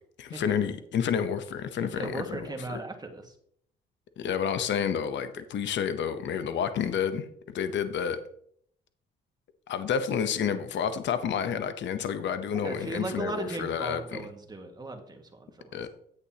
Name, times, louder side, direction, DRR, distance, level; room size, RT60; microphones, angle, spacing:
voice 1, 0.2-2.8 4.2-8.2 9.7-14.2 15.7-15.9, left 7 dB, 65° left, 10 dB, 0.8 m, -30 dB
voice 2, 1.9-3.3 12.6-15.9, right 2 dB, 20° right, 4 dB, 1.8 m, -37 dB
9.8 x 8.2 x 2.9 m, 0.66 s
cardioid pair, 90°, 20 cm